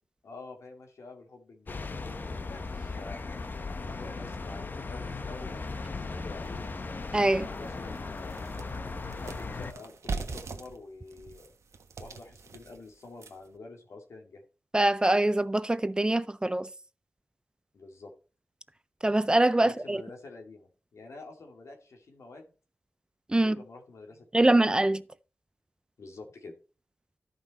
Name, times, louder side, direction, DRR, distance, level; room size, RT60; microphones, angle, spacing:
voice 1, 0.2-3.2 3.9-6.7 7.2-8.5 9.2-11.5 12.0-14.4 17.7-18.1 19.6-22.5 23.4-24.7 26.0-26.5, left 3 dB, 85° left, 2.5 m, -47 dB
sound 1, 1.7-9.7, left 3 dB, 40° left, 0.8 m, -37 dB
sound 2, 6.4-6.5 7.0-7.1 7.5-13.6, right 4 dB, 90° right, 1.2 m, -41 dB
voice 2, 7.1-7.5 14.7-16.7 19.0-20.0 23.3-23.6 24.3-25.0, right 1 dB, 15° right, 0.4 m, -23 dB
13.5 x 5.4 x 4.2 m
wide cardioid pair, 125°, 5 cm